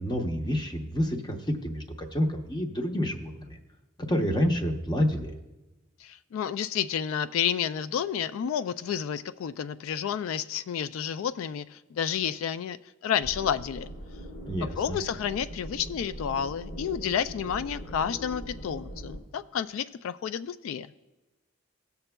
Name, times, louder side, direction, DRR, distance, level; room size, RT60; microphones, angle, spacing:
voice 1, 0.0-3.6 4.0-5.3 14.5-15.0, equal, 20° left, 4 dB, 0.8 m, -28 dB
voice 2, 6.0-12.8 13.0-13.9 14.6-20.9, left 8 dB, 85° left, 13 dB, 0.3 m, -30 dB
sound 1, 13.2-19.2, equal, 65° left, 1.3 m, -41 dB
17.5 x 6.9 x 2.2 m, 1.1 s
head